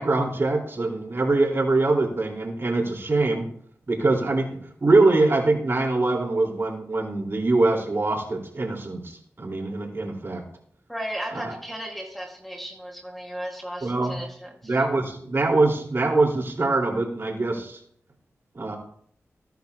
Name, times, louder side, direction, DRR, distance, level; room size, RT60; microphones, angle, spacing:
voice 1, 0.0-3.5 3.9-10.4 11.3-11.5 13.8-14.2 14.6-17.8 18.5-18.8, right 2 dB, 45° right, 4.4 m, -23 dB
voice 2, 10.9-14.8, equal, ahead, 1.9 m, -35 dB
20.0 x 10.5 x 2.9 m
cardioid pair, 60°, 6 cm